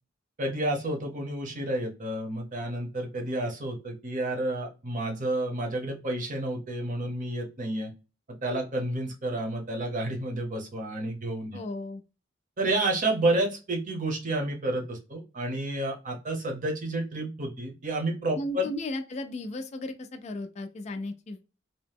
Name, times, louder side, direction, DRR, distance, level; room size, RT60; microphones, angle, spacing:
voice 1, 0.4-7.9 8.4-11.6 12.6-18.7, right 1 dB, 45° right, 0.8 m, -30 dB
voice 2, 11.5-12.0 18.3-21.4, left 1 dB, 35° left, 0.3 m, -35 dB
2.8 x 2.0 x 3.3 m
head